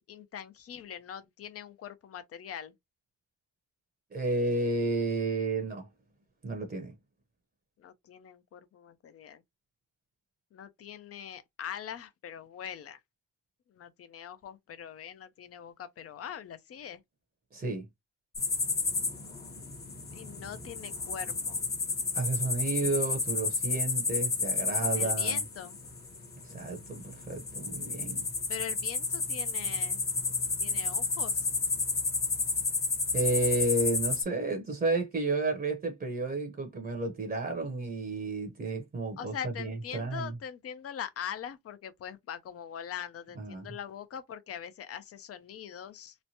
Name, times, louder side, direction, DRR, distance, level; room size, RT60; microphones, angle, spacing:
voice 1, 0.1-2.7 7.8-9.4 10.5-13.0 13.7-17.0 20.1-21.7 24.9-25.8 28.5-30.1 30.6-31.5 39.2-46.2, left 8 dB, 50° left, 0.6 m, -42 dB
voice 2, 4.1-5.9 6.4-6.9 17.5-17.8 22.1-25.4 26.4-28.3 33.1-40.4 43.3-43.7, right 2 dB, 30° right, 0.8 m, -31 dB
sound 1, 18.4-34.2, left 4 dB, 30° left, 1.0 m, -31 dB
3.1 x 2.1 x 2.8 m
cardioid pair, 90°, 30 cm